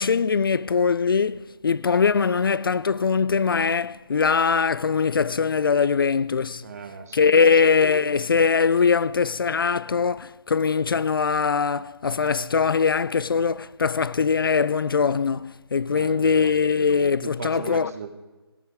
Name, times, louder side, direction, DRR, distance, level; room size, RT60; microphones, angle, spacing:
voice 1, 0.0-6.6 7.1-17.9, left 5 dB, 60° left, 0.4 m, -22 dB
voice 2, 6.6-7.7 15.9-16.6 17.2-18.1, right 6 dB, 35° right, 1.3 m, -37 dB
17.5 x 8.0 x 4.8 m
figure-of-eight pair, 155°, 13 cm